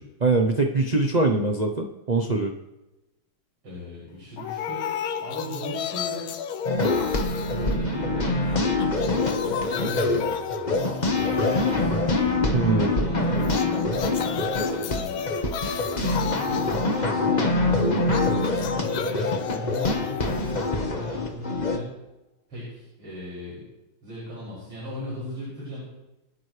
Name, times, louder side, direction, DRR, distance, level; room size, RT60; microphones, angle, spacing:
voice 1, 0.2-2.5 12.5-12.9, right 3 dB, 55° right, 2 dB, 0.4 m, -22 dB
voice 2, 3.6-4.9 5.2-6.3 7.0-8.7 9.7-10.2 10.8-13.8 14.7-15.5 15.8-17.5 18.6-21.9 22.5-23.6 24.0-25.8, equal, 80° right, -8 dB, 7.0 m, -37 dB
sound 1, 4.4-8.3 8.6-12.4 13.4-21.4, left 8 dB, 80° left, 1.7 m, -33 dB
sound 2, 6.6-21.8, left 2 dB, 25° left, 1.2 m, -25 dB
27.5 x 9.3 x 3.3 m, 0.97 s
omnidirectional pair, 2.3 m